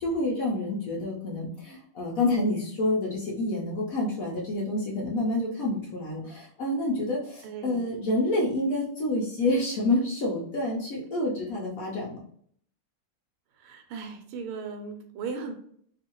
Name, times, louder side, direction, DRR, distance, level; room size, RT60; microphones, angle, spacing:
voice 1, 0.0-12.2, left 2 dB, 75° left, -3 dB, 0.8 m, -28 dB
voice 2, 7.4-7.9 13.6-15.5, right 5 dB, 85° right, 5 dB, 1.5 m, -37 dB
3.6 x 2.4 x 2.9 m, 0.62 s
omnidirectional pair, 2.4 m